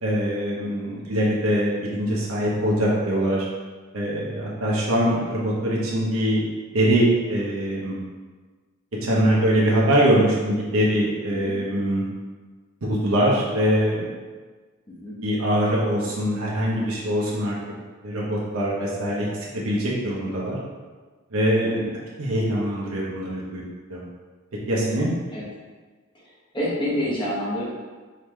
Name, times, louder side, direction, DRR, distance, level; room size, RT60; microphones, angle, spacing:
voice 1, 0.0-3.4 3.9-6.4 6.7-8.0 9.0-12.0 12.8-14.1 15.2-17.5 18.0-19.3 19.5-20.6 21.3-21.8 22.2-23.6 23.9-24.0 24.7-25.1, equal, 85° right, -5 dB, 0.9 m, -23 dB
voice 2, 0.6-1.0 11.3-11.6 14.9-15.2 21.6-21.9 25.3-25.4 26.1-26.3 26.5-27.6, left 1 dB, 25° left, -8 dB, 1.3 m, -29 dB
3.8 x 3.7 x 3.2 m, 1.4 s
head